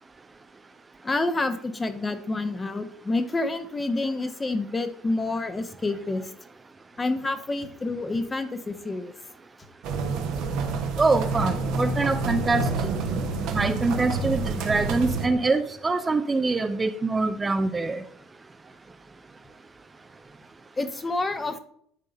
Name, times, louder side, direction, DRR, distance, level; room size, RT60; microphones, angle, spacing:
voice 1, 1.0-6.3 7.0-9.1 20.8-21.6, left 2 dB, 20° left, 8 dB, 1.1 m, -28 dB
sound 1, 9.8-15.3, right 3 dB, 60° right, 1.1 m, -28 dB
voice 2, 11.0-12.9 13.5-18.0, right 3 dB, 25° right, 8 dB, 0.6 m, -24 dB
9.8 x 3.7 x 5.2 m, 0.64 s
hypercardioid pair, 65°, 0 cm